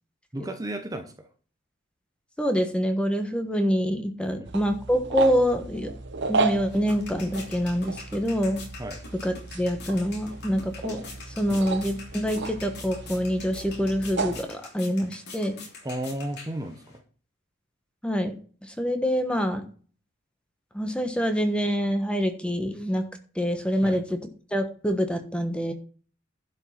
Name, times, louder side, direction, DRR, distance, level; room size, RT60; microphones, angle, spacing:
voice 1, 0.3-1.3 4.4-4.5 8.8-9.0 11.5-11.6 15.8-17.0 23.8-24.0, right 1 dB, 15° right, 6 dB, 1.0 m, -33 dB
voice 2, 2.4-5.9 6.3-8.6 9.2-11.0 11.4-15.6 18.0-18.4 18.7-19.7 20.7-23.1 23.3-24.2 24.5-25.7, equal, 5° left, 7 dB, 1.2 m, -26 dB
sound 1, 4.4-14.4, right 3 dB, 60° right, 1.0 m, -33 dB
sound 2, 6.3-17.0, left 3 dB, 55° left, 3.3 m, -45 dB
11.5 x 5.4 x 5.7 m, 0.41 s
head